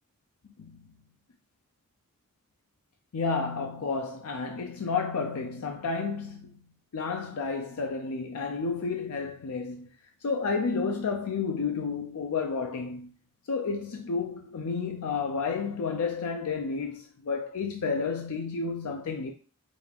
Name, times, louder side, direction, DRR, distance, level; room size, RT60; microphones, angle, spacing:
voice 1, 0.6-1.0 3.1-9.9 10.2-13.1 13.5-19.3, left 4 dB, 85° left, 0.5 m, -31 dB
4.9 x 2.4 x 3.4 m
head